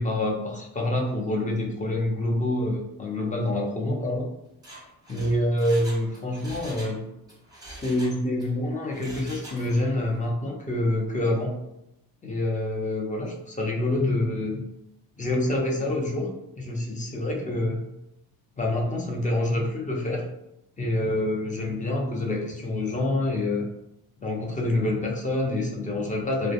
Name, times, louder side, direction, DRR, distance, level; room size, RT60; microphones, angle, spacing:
voice 1, 0.0-4.3 5.1-7.0 7.8-11.6 12.2-14.6 15.2-16.3 16.6-17.8 18.6-20.3 20.8-23.7 24.2-26.5, left 1 dB, 20° left, -1 dB, 0.6 m, -27 dB
Mechanisms, 4.5-7.0 7.3-8.5 8.9-9.9 10.2-10.3, right 1 dB, 10° right, 0.8 m, -44 dB
2.2 x 2.0 x 2.8 m, 0.84 s
supercardioid pair, 75°, 39 cm